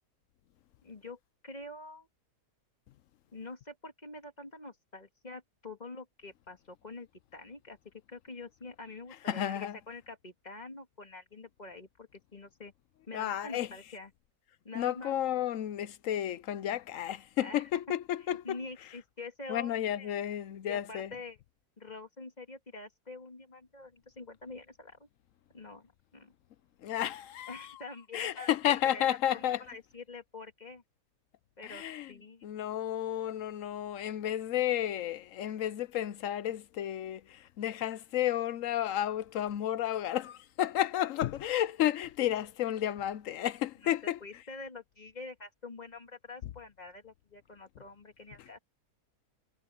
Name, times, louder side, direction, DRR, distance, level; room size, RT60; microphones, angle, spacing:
voice 1, 0.8-2.1 3.3-7.8 8.1-12.7 13.1-14.1 14.6-15.1 17.4-17.6 18.3-20.2 20.7-21.4 21.8-25.1 25.5-26.3 27.5-28.5 28.9-30.8 31.6-31.8 32.1-32.5 43.8-43.9 44.2-48.6, left 3 dB, 30° left, 2.4 m, -46 dB
voice 2, 9.3-9.8 13.1-13.7 14.7-18.6 19.5-21.1 26.8-27.8 28.1-29.6 31.6-32.1 32.4-44.4 46.4-46.5 48.4-48.5, left 11 dB, 65° left, 1.0 m, -32 dB
omnidirectional pair, 1.6 m